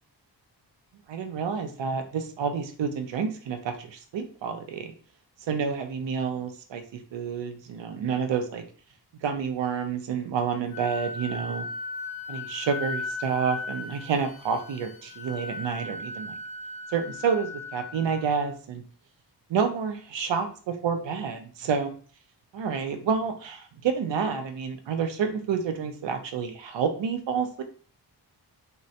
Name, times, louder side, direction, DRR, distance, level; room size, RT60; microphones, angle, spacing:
voice 1, 1.1-4.9 5.5-8.6 9.2-11.6 12.3-16.4 16.9-18.8 19.5-21.9 22.5-27.6, right 6 dB, 85° right, 7 dB, 0.6 m, -29 dB
Wind instrument woodwind instrument, 10.7-18.5, left 3 dB, 55° left, 0.6 m, -37 dB
3.6 x 2.1 x 2.7 m, 0.43 s
wide cardioid pair, 140°, 43 cm